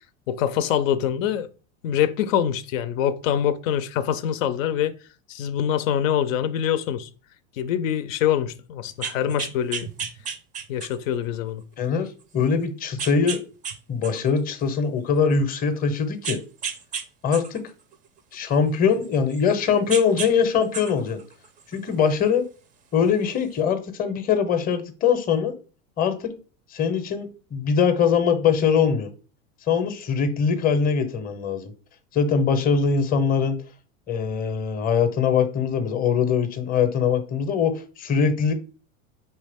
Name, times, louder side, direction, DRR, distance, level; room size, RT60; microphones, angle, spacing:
voice 1, 0.3-1.5 1.8-4.9 5.3-7.1 7.6-9.9 10.7-11.6, left 10 dB, 85° left, 0.6 m, -24 dB
sound 1, 8.9-11.1 11.7-11.8 13.0-13.8 14.0-15.3 16.2-17.0 17.3-19.5 19.9-20.3 20.6-22.0 23.1-23.2, right 6 dB, 20° right, 0.4 m, -33 dB
voice 2, 11.8-13.4 13.9-16.4 17.2-17.6 18.3-21.2 21.7-22.4 22.9-25.5 26.0-26.3 26.7-29.1 29.7-31.7 32.1-33.6 34.1-38.5, left 6 dB, 25° left, 0.6 m, -22 dB
4.6 x 3.2 x 3.4 m
supercardioid pair, 125°, 38 cm